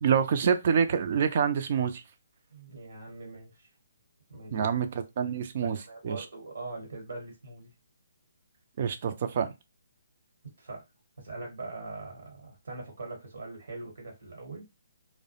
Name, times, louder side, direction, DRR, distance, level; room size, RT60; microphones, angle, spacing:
voice 1, 0.0-2.0 4.5-5.8 6.0-6.2 8.8-9.5, right 7 dB, 45° right, 0.4 m, -26 dB
voice 2, 2.5-3.7 4.3-4.7 5.6-7.7 10.6-10.8 11.2-14.7, right 3 dB, 65° right, 1.1 m, -42 dB
2.3 x 2.1 x 2.7 m
figure-of-eight pair, 140°, 0 cm